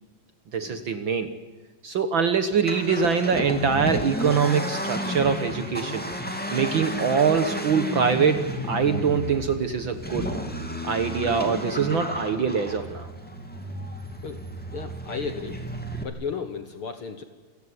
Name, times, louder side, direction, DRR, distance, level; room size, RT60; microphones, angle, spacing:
voice 1, 0.5-1.3 1.8-6.0 6.5-10.3 10.8-13.1, right 6 dB, 75° right, 9 dB, 1.1 m, -24 dB
Accelerating revving vroom, 2.5-16.0, equal, 5° left, 1.8 m, -32 dB
voice 2, 14.7-15.6 16.0-17.2, left 6 dB, 65° left, 9 dB, 1.4 m, -34 dB
28.5 x 15.5 x 9.7 m, 1.3 s
omnidirectional pair, 4.1 m